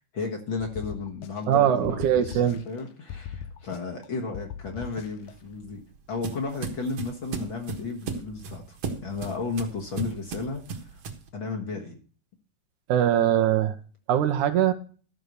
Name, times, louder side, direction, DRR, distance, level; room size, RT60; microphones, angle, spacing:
voice 1, 0.1-5.8 6.1-8.8 9.0-10.6 10.9-11.0 11.3-12.0, left 4 dB, 45° left, 1 dB, 1.9 m, -33 dB
sound 1, 0.6-1.6 1.8-2.8 3.1-4.1 4.3-5.3, left 9 dB, 75° left, 2.0 m, -39 dB
voice 2, 1.5-2.6 12.9-13.7 14.1-14.7, right 10 dB, 80° right, 7 dB, 2.4 m, -22 dB
sound 2, 5.3-11.3, right 4 dB, 60° right, 2.3 m, -36 dB
12.5 x 5.7 x 6.7 m, 0.39 s
omnidirectional pair, 3.5 m